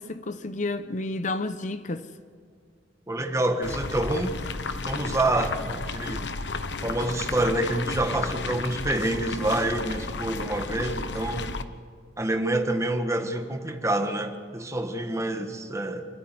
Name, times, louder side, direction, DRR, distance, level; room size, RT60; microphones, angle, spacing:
voice 1, 0.0-2.1, left 2 dB, 45° left, 0.8 m, -31 dB
voice 2, 3.1-4.3 4.8-6.3 6.8-11.5 12.2-16.0, right 1 dB, 15° right, 1.6 m, -27 dB
sound 1, 3.6-11.6, left 3 dB, 80° left, 1.1 m, -33 dB
26.5 x 13.5 x 9.5 m
head